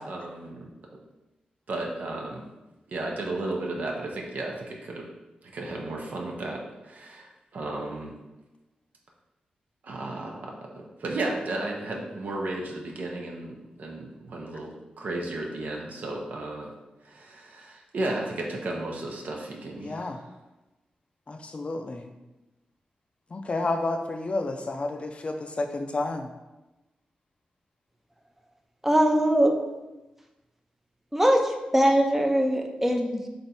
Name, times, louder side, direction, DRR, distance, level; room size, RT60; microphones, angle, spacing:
voice 1, 0.1-0.7 1.7-2.4 2.9-5.0 5.5-6.6 6.8-8.1 9.8-10.3 10.7-13.5 13.8-14.7 15.0-16.7 17.0-20.1, right 2 dB, 70° right, -1 dB, 0.6 m, -33 dB
voice 2, 19.8-20.2 21.3-22.1 23.3-26.3, left 2 dB, 40° left, 5 dB, 0.4 m, -30 dB
voice 3, 28.8-29.5 31.1-31.4 31.7-33.2, equal, 10° right, 3 dB, 0.5 m, -21 dB
3.4 x 2.6 x 4.1 m, 1.0 s
cardioid pair, 75°, 3 cm